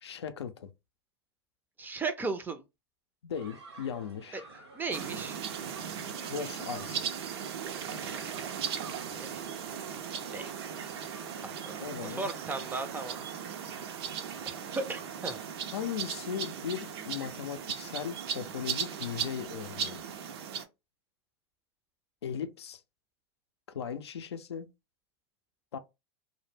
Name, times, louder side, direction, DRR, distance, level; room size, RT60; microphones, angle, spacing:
voice 1, 0.0-0.7 3.2-4.5 6.3-7.1 11.8-12.3 15.7-20.3 22.2-22.8 23.7-24.7 25.7-25.8, left 7 dB, 90° left, 0.4 m, -38 dB
voice 2, 1.8-2.6 4.3-5.4 7.7-8.4 9.2-9.4 10.3-10.5 11.4-13.2 14.5-14.6 14.9-15.4, right 4 dB, 15° right, 0.4 m, -37 dB
sound 1, 3.3-15.5, right 3 dB, 90° right, 0.9 m, -52 dB
sound 2, 4.9-20.6, right 8 dB, 70° right, 0.5 m, -38 dB
2.1 x 2.0 x 3.1 m
hypercardioid pair, 110°, 14 cm